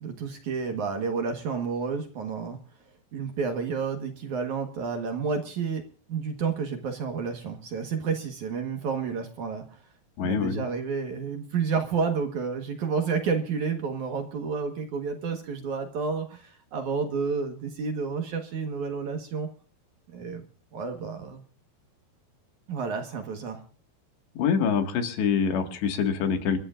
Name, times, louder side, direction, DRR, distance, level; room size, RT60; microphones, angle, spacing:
voice 1, 0.0-2.6 3.1-5.8 6.1-9.8 10.2-19.5 20.1-20.4 20.7-21.4 22.7-23.6, right 5 dB, 60° right, 5 dB, 2.3 m, -30 dB
voice 2, 10.2-10.6 24.4-26.6, left 6 dB, 80° left, 6 dB, 4.1 m, -25 dB
29.5 x 13.0 x 2.5 m, 0.40 s
omnidirectional pair, 4.9 m